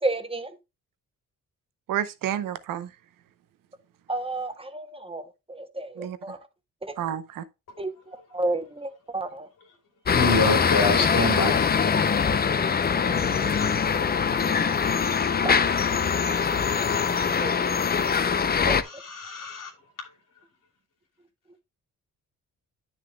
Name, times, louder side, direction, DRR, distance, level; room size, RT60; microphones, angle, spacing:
voice 1, 0.0-0.5 4.1-6.4 6.8-6.9 7.8-7.9 8.3-9.5 15.1-15.5 17.4-17.8 18.7-18.8, right 2 dB, 15° right, 0.8 m, -31 dB
voice 2, 1.9-2.9 6.0-6.2 7.0-7.4 16.2-16.3, right 10 dB, 90° right, 0.8 m, -30 dB
voice 3, 10.1-11.7 18.8-19.7, left 2 dB, 75° left, 2.9 m, -26 dB
sound 1, 10.1-18.8, left 6 dB, 30° left, 0.5 m, -23 dB
9.9 x 6.3 x 2.2 m
cardioid pair, 100°, 32 cm